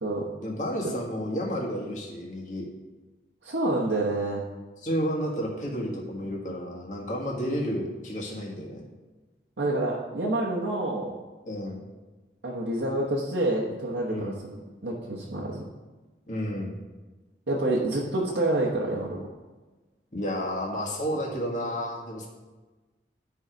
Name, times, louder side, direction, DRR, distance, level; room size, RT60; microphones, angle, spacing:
voice 1, 0.4-2.7 4.8-8.8 11.5-11.8 14.1-14.4 16.3-16.7 20.1-22.3, equal, 45° left, -2 dB, 1.7 m, -31 dB
voice 2, 3.4-4.4 9.6-11.2 12.4-15.6 17.5-19.2, right 2 dB, 90° right, -5 dB, 1.1 m, -28 dB
10.5 x 4.8 x 5.1 m, 1.2 s
head